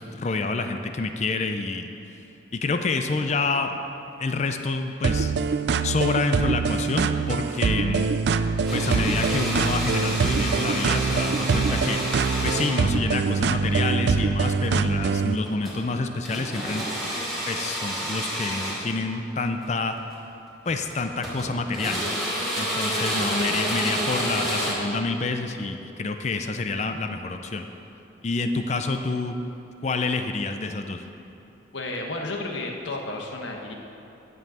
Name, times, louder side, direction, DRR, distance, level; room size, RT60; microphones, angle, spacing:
voice 1, 0.0-1.9 2.5-3.8 4.2-5.3 5.8-8.1 8.7-12.0 12.4-16.9 17.5-19.9 20.7-22.1 22.5-27.7 28.2-29.4 29.8-31.0, left 3 dB, 35° left, 6 dB, 0.5 m, -28 dB
sound 1, 5.0-15.4, right 5 dB, 65° right, 0.3 m, -24 dB
sound 2, 8.7-13.0 15.3-15.8 16.3-18.9 20.0-20.1 20.7-21.5 21.7-24.7, equal, ahead, 2.4 m, -29 dB
voice 2, 31.7-33.7, left 2 dB, 85° left, 1 dB, 1.2 m, -32 dB
10.0 x 5.4 x 7.7 m, 2.9 s
head